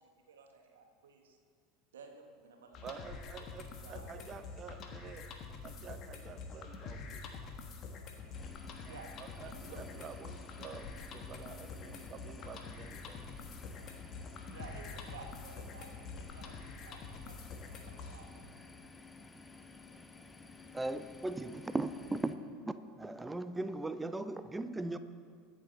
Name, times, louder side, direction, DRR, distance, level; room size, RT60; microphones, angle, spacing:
voice 1, 0.0-1.4 1.9-2.9 3.8-4.2 8.8-9.1 9.4-10.0 14.5-17.6 17.9-18.4, right 5 dB, 75° right, 3 dB, 1.5 m, -54 dB
sound 1, 2.7-18.2, left 4 dB, 45° left, 1.5 m, -46 dB
voice 2, 2.8-5.3 5.6-7.2 8.8-13.2, right 6 dB, 35° right, 9 dB, 0.9 m, -50 dB
sound 2, 8.3-22.3, left 3 dB, 15° left, 0.9 m, -54 dB
voice 3, 20.7-22.3 23.0-25.0, right 2 dB, 10° right, 11 dB, 0.7 m, -37 dB
22.5 x 7.5 x 4.0 m, 2.1 s
figure-of-eight pair, 75°, 0 cm